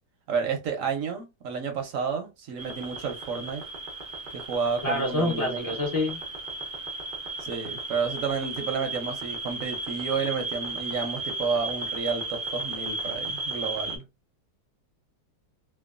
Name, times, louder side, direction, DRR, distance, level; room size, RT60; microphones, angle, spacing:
voice 1, 0.3-3.6 4.3-5.6 7.4-14.1, right 5 dB, 65° right, 0.8 m, -31 dB
sound 1, 2.6-14.0, right 2 dB, 80° right, 0.4 m, -35 dB
voice 2, 4.8-6.2, left 1 dB, 35° left, 0.6 m, -27 dB
2.9 x 2.2 x 2.3 m
omnidirectional pair, 1.9 m